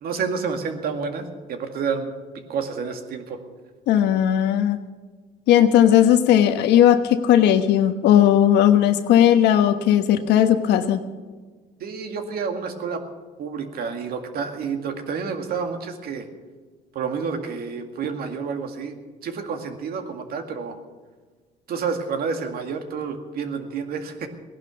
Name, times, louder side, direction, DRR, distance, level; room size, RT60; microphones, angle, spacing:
voice 1, 0.0-2.1 2.5-3.4 11.8-13.0 13.4-16.3 16.9-19.0 19.2-20.8 21.7-24.3, right 5 dB, 65° right, 6 dB, 2.1 m, -29 dB
voice 2, 3.9-4.8 5.5-11.0, left 10 dB, 85° left, 9 dB, 1.2 m, -17 dB
17.0 x 11.5 x 7.0 m, 1.4 s
cardioid pair, 110°, 17 cm